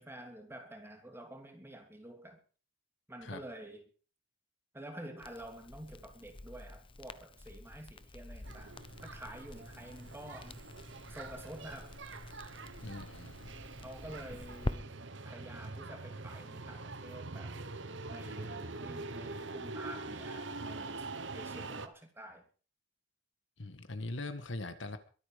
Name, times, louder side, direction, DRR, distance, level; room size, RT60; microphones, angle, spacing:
voice 1, 0.0-2.4 3.1-3.8 4.7-8.8 9.0-10.6 11.1-11.9 13.8-14.9 15.2-17.5 18.1-21.1 21.3-22.4, right 1 dB, 10° right, 3 dB, 3.0 m, -49 dB
Crackle, 5.2-14.7, left 1 dB, 25° left, 0.8 m, -46 dB
sound 1, 8.4-21.9, right 3 dB, 70° right, 1.2 m, -44 dB
voice 2, 12.8-13.5 23.6-25.0, left 2 dB, 70° left, 10 dB, 1.7 m, -41 dB
22.5 x 9.0 x 5.3 m, 0.39 s
head